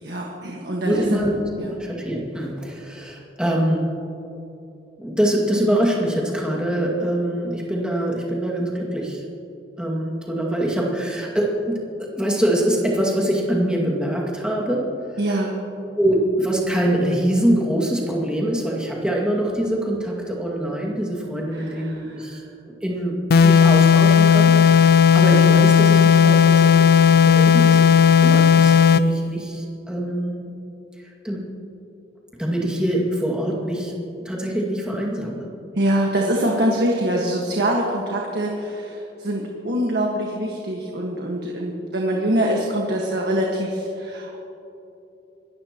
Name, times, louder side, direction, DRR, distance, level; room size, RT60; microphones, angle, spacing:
voice 1, 0.0-1.2 1.6-1.7 15.2-15.6 21.5-22.0 22.3-22.4 35.8-44.4, right 1 dB, 65° right, -1 dB, 1.6 m, -24 dB
voice 2, 0.9-4.1 5.0-9.2 9.8-14.9 16.0-22.4 22.8-30.5 31.2-31.5 32.3-34.0 34.2-35.5, right 1 dB, 5° right, -3 dB, 2.2 m, -24 dB
sound 1, 23.3-29.1, left 7 dB, 55° left, 0.4 m, -14 dB
25.5 x 13.5 x 3.0 m, 2.9 s
head